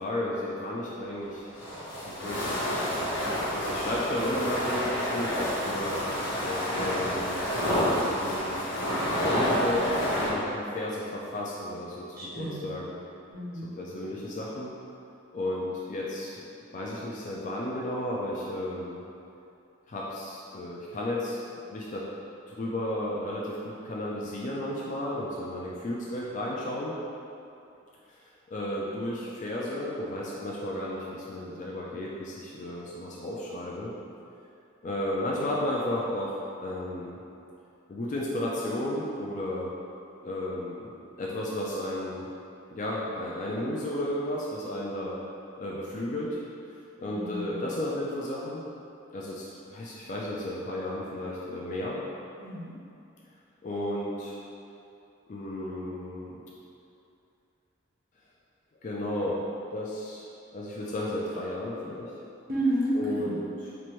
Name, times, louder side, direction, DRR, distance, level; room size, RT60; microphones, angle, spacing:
voice 1, 0.0-1.5 2.1-2.7 3.5-6.0 6.4-8.5 9.0-9.9 10.1-13.0 13.8-14.7 15.3-19.0 19.9-21.4 21.7-22.1 22.5-26.9 28.5-33.9 34.8-37.2 37.9-39.7 40.2-40.9 41.2-42.3 42.7-45.2 45.6-46.4 47.0-48.6 49.1-52.0 53.6-54.4 55.3-56.4 58.8-59.4 59.7-60.3 60.5-62.1 62.9-63.7, left 1 dB, 40° left, -5 dB, 0.3 m, -33 dB
sound 1, 1.3-10.3, equal, 75° left, 1.1 m, -29 dB
voice 2, 12.2-12.6 13.3-13.7 47.1-47.5 52.4-52.7 62.5-63.3, right 1 dB, 45° right, -9 dB, 1.1 m, -30 dB
4.3 x 2.6 x 3.0 m, 2.7 s
head